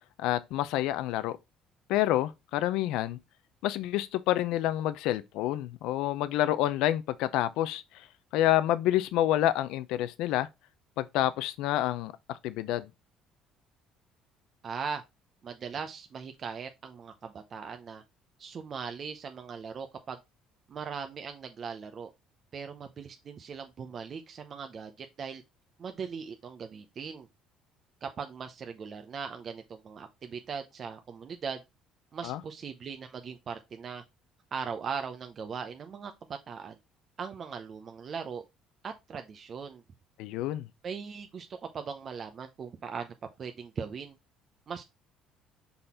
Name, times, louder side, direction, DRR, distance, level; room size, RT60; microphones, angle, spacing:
voice 1, 0.2-1.4 1.9-3.2 3.6-8.1 8.3-10.5 11.0-12.1 12.4-12.9 32.2-32.4 40.2-40.7, left 13 dB, 80° left, 0.5 m, -28 dB
voice 2, 14.6-15.0 15.4-18.0 18.4-20.2 20.7-22.1 22.5-25.4 25.8-27.3 28.0-31.6 32.1-34.0 34.5-36.1 36.5-36.8 37.2-38.4 38.8-39.8 40.8-44.2 44.7-44.8, right 6 dB, 45° right, 0.7 m, -39 dB
5.6 x 4.1 x 4.3 m
cardioid pair, 100°, 0 cm